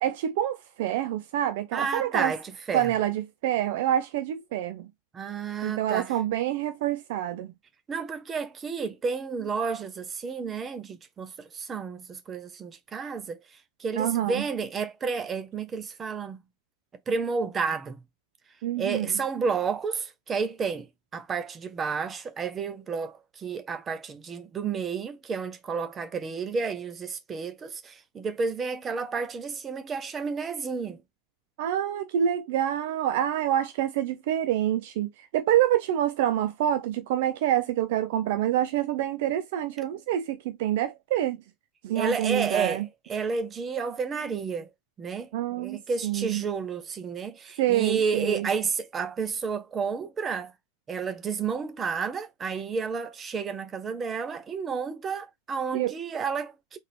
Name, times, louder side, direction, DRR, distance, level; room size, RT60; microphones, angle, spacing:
voice 1, 0.0-2.3 2.7-4.9 5.6-7.5 14.0-14.4 18.6-19.1 31.6-41.4 41.8-42.8 45.3-46.4 47.6-48.5 55.7-55.9, right 11 dB, 50° right, 0.4 m, -27 dB
voice 2, 1.7-2.9 5.1-6.1 7.9-13.4 13.8-16.4 17.1-18.0 18.8-31.0 41.9-44.7 45.0-50.5 50.9-56.8, right 5 dB, 20° right, 0.7 m, -31 dB
3.8 x 2.6 x 3.1 m
figure-of-eight pair, 90°, 0 cm